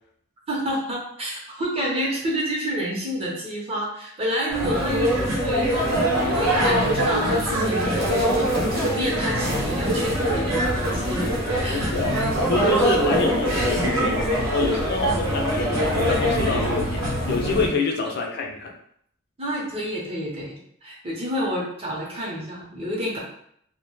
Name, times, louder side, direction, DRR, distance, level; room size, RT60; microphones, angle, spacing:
voice 1, 0.5-11.3 11.6-11.9 19.4-23.2, equal, 30° right, -4 dB, 0.6 m, -29 dB
sound 1, 4.5-17.7, equal, 90° right, 0.8 m, -23 dB
voice 2, 11.7-12.2 12.5-18.7, left 3 dB, 55° left, 1 dB, 0.3 m, -27 dB
2.1 x 2.0 x 2.9 m, 0.68 s
head